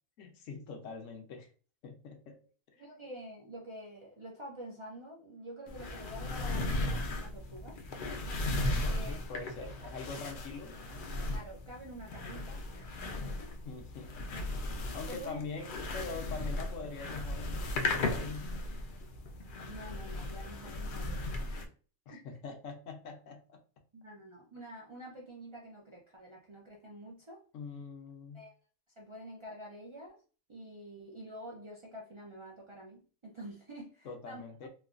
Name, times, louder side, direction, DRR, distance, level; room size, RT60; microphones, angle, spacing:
voice 1, 0.2-1.5 1.8-2.4 8.6-10.8 13.6-14.1 14.9-18.5 22.1-23.6 27.5-28.4 34.0-34.7, left 4 dB, 80° left, 1.1 m, -44 dB
voice 2, 2.8-7.8 8.9-9.2 9.5-9.7 11.3-13.0 15.1-15.4 19.7-21.7 22.1-22.2 23.9-27.4 28.3-28.6 29.0-30.2 30.5-34.5, right 1 dB, 55° right, 0.3 m, -48 dB
sound 1, 5.7-21.6, left 2 dB, 60° left, 0.5 m, -36 dB
3.1 x 2.2 x 2.4 m
omnidirectional pair, 1.3 m